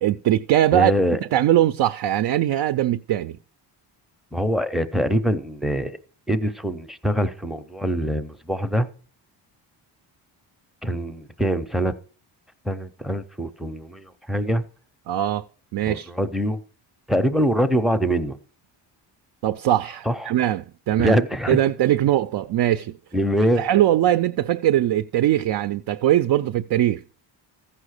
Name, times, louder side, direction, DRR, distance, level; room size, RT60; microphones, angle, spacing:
voice 1, 0.0-0.9 1.3-3.4 15.1-15.4 15.7-16.1 19.4-21.2 21.5-23.0 23.6-27.0, right 12 dB, 55° right, 0.5 m, -21 dB
voice 2, 0.7-1.2 4.3-6.0 6.3-8.9 10.8-11.9 12.6-14.6 15.9-16.6 17.1-18.4 20.1-20.3 21.0-21.6 23.1-23.6, equal, ahead, 0.6 m, -23 dB
14.5 x 5.7 x 6.4 m
cardioid pair, 140°, 45 cm